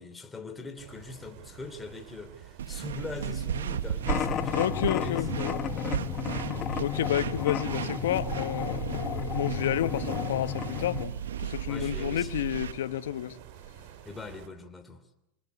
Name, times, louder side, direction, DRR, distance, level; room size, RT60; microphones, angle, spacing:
voice 1, 0.0-5.3 5.9-6.2 11.7-12.4 14.0-15.0, left 3 dB, 15° left, 3.5 m, -42 dB
sound 1, 0.8-14.5, right 9 dB, 65° right, 3.4 m, -50 dB
sound 2, 2.6-12.7, right 9 dB, 90° right, 1.2 m, -35 dB
sound 3, 4.1-11.1, left 10 dB, 40° left, 1.5 m, -33 dB
voice 2, 4.5-5.9 6.8-11.1 11.4-13.4, left 11 dB, 80° left, 1.3 m, -30 dB
27.0 x 19.5 x 8.5 m
hypercardioid pair, 100°, 0 cm